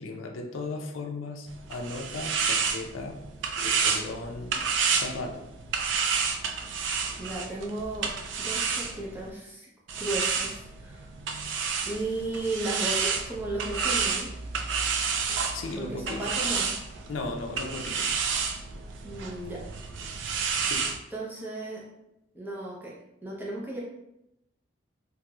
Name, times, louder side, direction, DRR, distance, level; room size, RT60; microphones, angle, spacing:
voice 1, 0.0-3.2 3.6-4.6 4.9-5.4 15.5-16.3 17.1-18.1 20.6-20.9, left 3 dB, 90° left, 2 dB, 0.4 m, -36 dB
sound 1, 1.5-9.3 9.9-21.0, right 5 dB, 70° right, 0.3 m, -30 dB
voice 2, 7.2-8.1 8.4-9.7 10.0-11.1 11.8-14.3 15.8-16.7 19.0-19.7 21.1-21.8 22.3-23.8, right 2 dB, 10° right, -5 dB, 0.6 m, -35 dB
3.0 x 2.9 x 2.3 m, 0.87 s
head